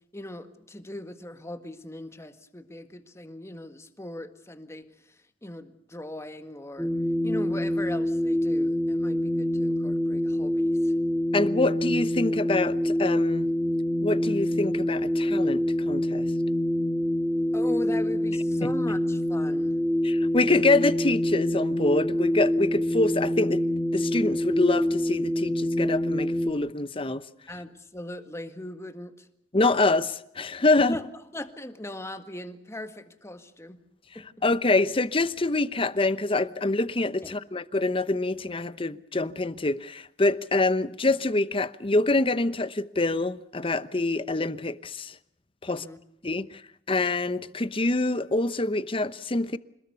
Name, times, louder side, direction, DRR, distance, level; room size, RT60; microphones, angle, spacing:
voice 1, 0.1-6.9 7.2-10.9 17.5-19.7 27.5-29.3 30.8-31.1 31.3-33.8 34.2-34.3 37.2-37.3 45.7-46.0, left 1 dB, 15° left, 1.8 m, -39 dB
sound 1, 6.8-26.5, left 1 dB, ahead, 1.8 m, -26 dB
voice 2, 11.3-13.5 14.0-16.3 18.6-18.7 20.0-23.7 23.9-27.2 29.5-31.0 34.4-45.2 45.6-45.9 46.2-46.6 46.9-49.6, left 2 dB, 30° left, 1.0 m, -25 dB
27.0 x 20.5 x 7.0 m
head